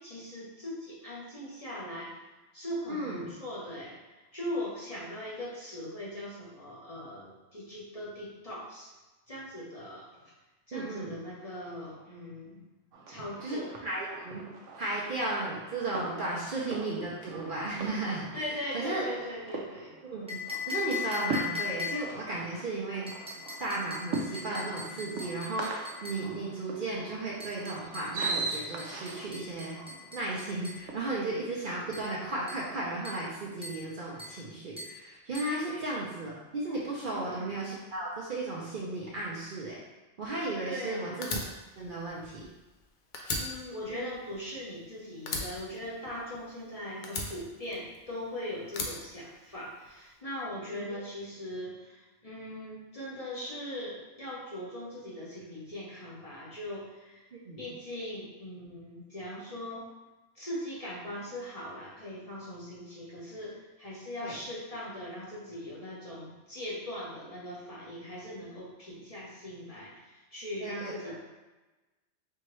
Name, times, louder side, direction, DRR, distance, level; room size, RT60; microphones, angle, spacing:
voice 1, 0.0-2.2 2.5-8.9 9.3-10.2 10.7-12.6 13.1-13.7 16.5-16.6 18.3-19.9 35.6-35.8 37.1-37.5 40.7-41.2 43.4-57.2 57.6-59.9 60.3-71.2, left 1 dB, 30° left, -7 dB, 1.0 m, -40 dB
voice 2, 2.9-3.2 10.7-11.1 13.4-14.4 14.8-18.4 18.7-19.0 20.0-20.4 20.7-23.1 23.6-29.8 30.1-39.8 40.2-41.3 41.8-42.5 43.9-44.0 50.7-51.0 57.5-57.6 64.2-64.3 70.6-71.1, right 2 dB, 50° right, -5 dB, 0.7 m, -35 dB
sound 1, 12.9-31.0, right 3 dB, 80° right, 1.0 m, -41 dB
sound 2, 20.3-22.2 23.1-26.3 27.4-30.9 31.9-32.1 32.5-32.7 33.0-33.3 33.6-33.9 34.2-34.4 34.8-35.0 35.3-35.6, left 5 dB, 5° right, 0.6 m, -40 dB
Fire, 41.2-42.8 43.1-44.9 45.3-46.6 47.0-48.2 48.7-49.9, left 2 dB, 55° left, 0.6 m, -37 dB
4.5 x 2.9 x 3.1 m, 1.1 s
omnidirectional pair, 1.3 m